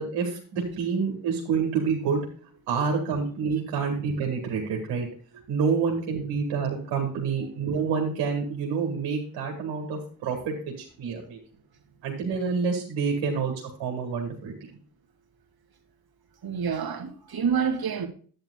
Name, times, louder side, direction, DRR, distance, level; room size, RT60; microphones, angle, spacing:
voice 1, 0.0-2.3 2.7-5.1 5.5-11.4 12.0-13.5 13.8-14.7, right 5 dB, 90° right, 2.1 m, -28 dB
voice 2, 16.4-18.1, right 6 dB, 60° right, 2.1 m, -28 dB
11.0 x 9.2 x 2.3 m
supercardioid pair, 45°, 42 cm